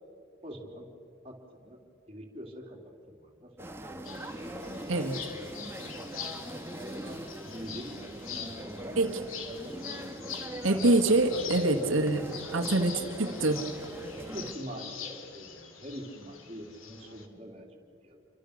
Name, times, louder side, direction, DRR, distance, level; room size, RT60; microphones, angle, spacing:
voice 1, 0.4-0.9 1.2-1.8 2.1-2.8 3.1-3.9 7.4-9.0 9.5-10.1 11.5-11.9 12.5-12.7 13.2-13.5 14.1-18.2, equal, 30° right, -1 dB, 3.1 m, -43 dB
sound 1, 3.6-14.5, right 1 dB, 10° right, 1.4 m, -42 dB
sound 2, 4.0-17.3, left 7 dB, 90° left, 2.4 m, -44 dB
voice 2, 4.9-5.3 9.0-9.2 10.6-12.2 12.5-13.6, right 2 dB, 85° right, 3 dB, 2.0 m, -25 dB
28.0 x 25.0 x 6.6 m, 2.6 s
head